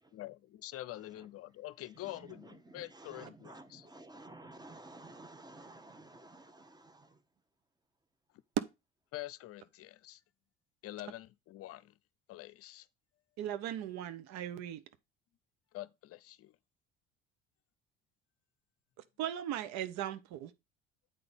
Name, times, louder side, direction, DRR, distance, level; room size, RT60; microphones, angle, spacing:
voice 1, 0.1-3.9 9.1-10.2 10.8-11.9 12.3-12.9 15.7-16.6, left 15 dB, 50° left, 0.7 m, -46 dB
voice 2, 2.0-7.2, right 2 dB, 15° right, 1.3 m, -53 dB
voice 3, 13.4-14.8 19.2-20.5, right 11 dB, 65° right, 1.0 m, -38 dB
8.6 x 4.1 x 5.1 m
hypercardioid pair, 65°, 29 cm